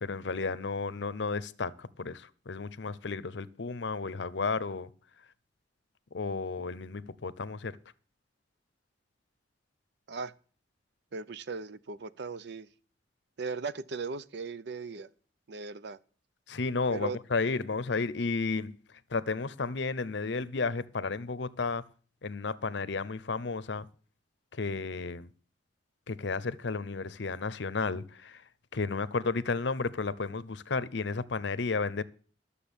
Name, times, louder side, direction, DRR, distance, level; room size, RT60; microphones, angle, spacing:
voice 1, 0.0-4.9 6.1-7.8 16.5-18.8 19.1-21.8 22.2-23.9 24.5-25.3 26.1-28.4 28.7-32.0, left 4 dB, 65° left, 0.7 m, -33 dB
voice 2, 11.1-12.7 13.4-15.1 15.5-16.0 16.9-17.2, right 4 dB, 60° right, 0.6 m, -38 dB
12.0 x 7.0 x 7.1 m
head